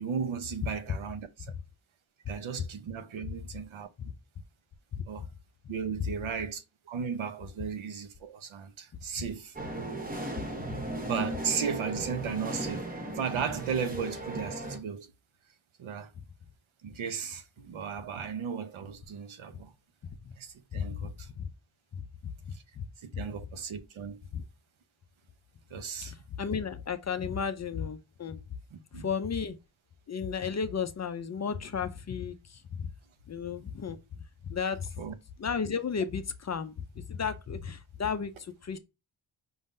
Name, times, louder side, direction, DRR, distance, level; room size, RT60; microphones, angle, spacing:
voice 1, 0.0-1.5 2.3-3.9 5.1-5.3 5.7-9.6 11.1-15.1 15.8-16.1 16.8-19.7 20.4-21.3 22.5-22.6 23.0-24.2 25.7-26.1 28.7-29.1 35.0-35.1, right 6 dB, 80° right, 0.9 m, -35 dB
sound 1, 9.6-14.8, right 1 dB, 20° right, 0.8 m, -36 dB
voice 2, 20.7-21.1 21.4-21.5 21.9-22.1 22.8-22.9 23.1-23.2 24.3-24.4 26.0-28.4 28.9-29.6 30.1-32.9 33.3-34.9 35.4-38.8, left 6 dB, 35° left, 0.4 m, -34 dB
5.3 x 3.7 x 2.5 m
wide cardioid pair, 175°, 47 cm